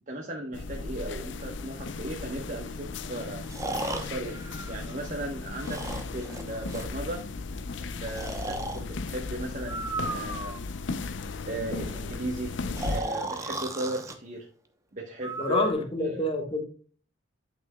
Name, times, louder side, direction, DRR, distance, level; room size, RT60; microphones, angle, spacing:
voice 1, 0.1-3.4 3.9-4.4 4.7-5.8 6.1-7.3 7.8-10.5 11.5-12.6 12.8-14.5 14.9-15.7 16.0-16.3, right 1 dB, 40° right, 1.1 m, -36 dB
sound 1, 0.5-13.0, left 3 dB, 70° left, 0.6 m, -36 dB
Breathing, 1.6-1.7 3.5-5.2 5.6-6.9 8.1-8.8 9.6-10.8 12.8-14.1 15.2-15.7, right 2 dB, 15° right, 0.8 m, -35 dB
voice 2, 15.4-16.6, left 2 dB, 30° left, 1.5 m, -27 dB
11.0 x 6.1 x 2.3 m
head